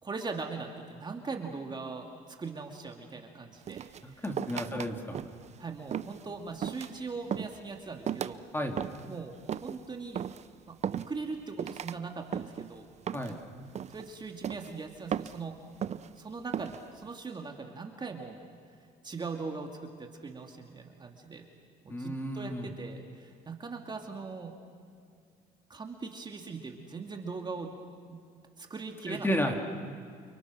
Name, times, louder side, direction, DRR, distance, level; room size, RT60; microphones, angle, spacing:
voice 1, 0.0-4.2 4.7-4.8 5.6-8.4 9.1-10.2 10.7-12.9 13.3-13.4 13.9-15.6 16.2-18.4 19.0-21.5 21.8-24.6 25.7-27.7 28.1-28.2 28.6-29.4, right 4 dB, 25° right, 3 dB, 2.3 m, -40 dB
sound 1, 3.7-4.9 5.2-5.5 5.9-6.2 6.6-7.0 7.3-7.6 8.1-8.4 8.8-9.1 9.5-9.8 10.2-10.4 10.8-11.3 11.6-12.0 12.3-12.7 13.1-13.4 13.8-14.1 14.4-14.7 15.1-15.4 15.8-16.1 16.5-16.8, right 9 dB, 40° right, 0.7 m, -36 dB
voice 2, 4.0-5.2 8.5-8.8 13.1-13.4 21.9-22.7 29.1-29.6, equal, 10° left, 3 dB, 3.1 m, -32 dB
29.5 x 29.0 x 6.3 m, 2.2 s
cardioid pair, 110°, 17 cm